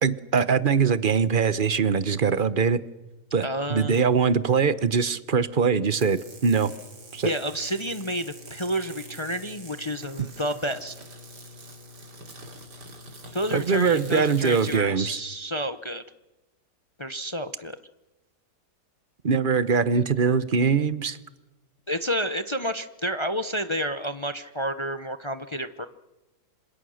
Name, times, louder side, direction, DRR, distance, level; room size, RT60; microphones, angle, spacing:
voice 1, 0.0-2.8 3.3-6.7 7.1-7.3 13.5-15.2 19.2-21.2, right 6 dB, 40° right, 14 dB, 0.9 m, -22 dB
voice 2, 3.4-4.1 7.2-10.9 13.3-16.0 17.0-17.8 21.9-25.9, equal, 30° left, 10 dB, 0.6 m, -30 dB
sound 1, 5.8-14.8, equal, 90° right, 3.4 m, -44 dB
27.0 x 26.5 x 6.5 m, 1.1 s
omnidirectional pair, 1.8 m